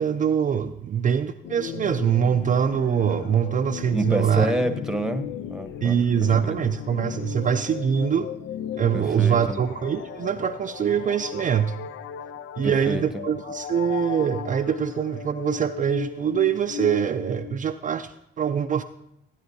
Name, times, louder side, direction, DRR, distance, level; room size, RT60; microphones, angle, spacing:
voice 1, 0.0-4.5 5.8-8.3 8.8-11.7 12.6-18.8, right 8 dB, 40° right, 6 dB, 0.4 m, -24 dB
sound 1, 1.4-17.6, left 9 dB, 70° left, 0.6 m, -36 dB
voice 2, 3.9-6.6 8.9-9.6 12.6-13.2, right 1 dB, 5° right, 8 dB, 1.0 m, -28 dB
17.5 x 9.1 x 2.7 m, 0.83 s
cardioid pair, 90°, 20 cm